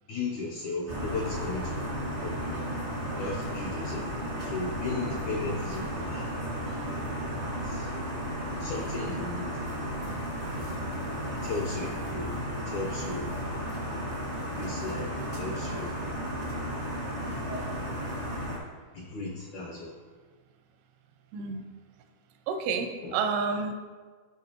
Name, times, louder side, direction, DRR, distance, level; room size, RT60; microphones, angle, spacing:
voice 1, 0.1-1.8 2.2-2.6 3.2-6.5 7.6-7.9 8.5-9.5 11.3-13.3 14.6-15.9 17.2-17.5 18.9-19.9 23.0-23.2, left 3 dB, 75° left, -1 dB, 1.7 m, -36 dB
sound 1, 0.9-18.6, equal, 65° right, 0.6 m, -34 dB
voice 2, 21.3-21.7 22.5-23.7, right 5 dB, 85° right, 6 dB, 2.7 m, -29 dB
13.0 x 5.2 x 3.0 m, 1.5 s
omnidirectional pair, 4.5 m